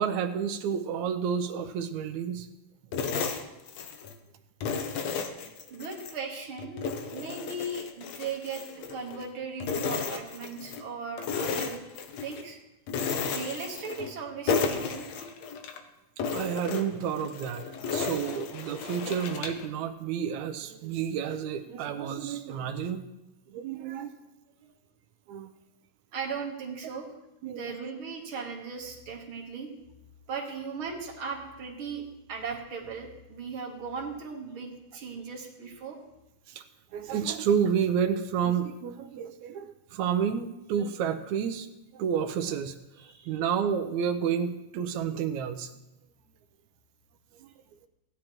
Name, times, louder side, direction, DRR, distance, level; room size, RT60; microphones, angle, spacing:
voice 1, 0.0-2.5 16.3-23.0 23.5-24.1 25.3-25.5 27.4-27.8 36.5-36.6 36.9-41.7 41.9-42.8 43.3-45.7 47.4-47.5, right 8 dB, 80° right, 8 dB, 2.0 m, -30 dB
sound 1, 2.9-4.2 4.6-6.2 6.6-9.3 9.6-10.9 11.2-12.4 12.9-14.2 14.5-15.8 16.2-19.7, left 5 dB, 70° left, 2.0 m, -33 dB
voice 2, 5.7-11.8 12.2-12.6 13.3-15.1 26.1-27.1 27.5-29.7 30.3-32.0 32.3-36.0 43.0-43.4, right 4 dB, 55° right, 1 dB, 1.9 m, -37 dB
16.5 x 10.5 x 3.0 m, 0.95 s
omnidirectional pair, 3.3 m